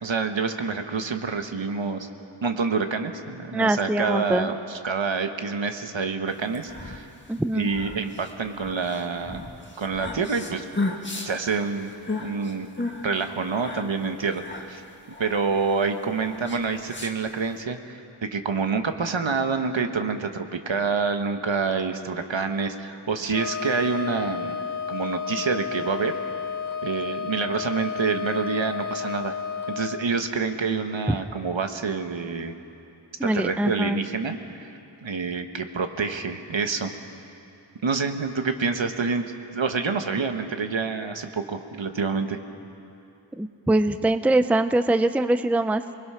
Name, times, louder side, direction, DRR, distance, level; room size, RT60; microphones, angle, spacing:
voice 1, 0.0-2.1 2.4-7.1 7.5-9.4 9.8-10.6 11.2-11.9 12.2-14.8 15.2-24.6 24.9-26.1 26.8-29.3 29.7-32.6 33.2-36.9 37.8-42.4, right 4 dB, 70° right, 6 dB, 1.4 m, -27 dB
voice 2, 3.5-4.5 7.3-7.7 33.2-34.0 43.4-45.9, right 1 dB, 5° right, 11 dB, 0.5 m, -23 dB
sound 1, 6.4-17.6, left 2 dB, 25° left, 1.8 m, -35 dB
Wind instrument woodwind instrument, 23.3-30.1, left 6 dB, 40° left, 1.1 m, -32 dB
26.5 x 20.5 x 5.8 m, 2.8 s
wide cardioid pair, 80°, 48 cm